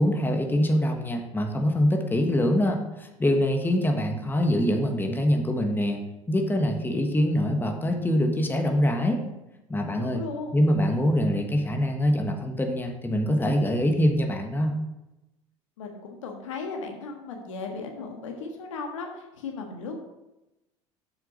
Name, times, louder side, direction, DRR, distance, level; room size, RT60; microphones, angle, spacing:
voice 1, 0.0-6.0 6.3-9.2 9.7-10.2 10.5-14.7, equal, 15° left, 3 dB, 1.4 m, -24 dB
voice 2, 10.0-10.6 15.8-20.0, left 4 dB, 80° left, 3 dB, 1.6 m, -36 dB
7.6 x 6.2 x 5.2 m, 0.96 s
hypercardioid pair, 75°, 16 cm